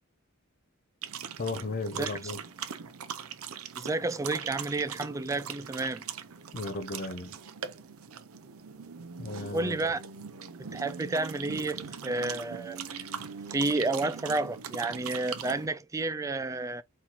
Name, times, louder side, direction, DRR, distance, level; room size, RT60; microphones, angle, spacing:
sound 1, 1.0-15.7, right 7 dB, 80° right, 0.6 m, -41 dB
voice 1, 1.4-2.4 6.5-7.3 9.2-9.8, left 2 dB, 45° left, 0.8 m, -35 dB
voice 2, 3.8-6.0 9.5-10.0 10.7-13.1 13.5-16.8, right 2 dB, 15° right, 0.3 m, -31 dB
4.2 x 4.2 x 2.9 m
head